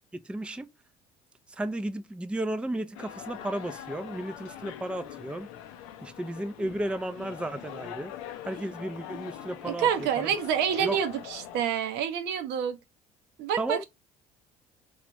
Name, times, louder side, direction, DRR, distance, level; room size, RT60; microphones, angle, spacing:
voice 1, 0.1-0.7 1.6-5.5 6.0-8.1 8.5-10.4 10.8-11.0 13.6-13.8, right 1 dB, 5° right, 0.4 m, -34 dB
sound 1, 2.9-11.6, left 10 dB, 80° left, 0.5 m, -43 dB
voice 2, 9.6-12.8 13.4-13.8, right 8 dB, 65° right, 0.6 m, -28 dB
3.1 x 2.4 x 2.9 m
hypercardioid pair, 60°, 18 cm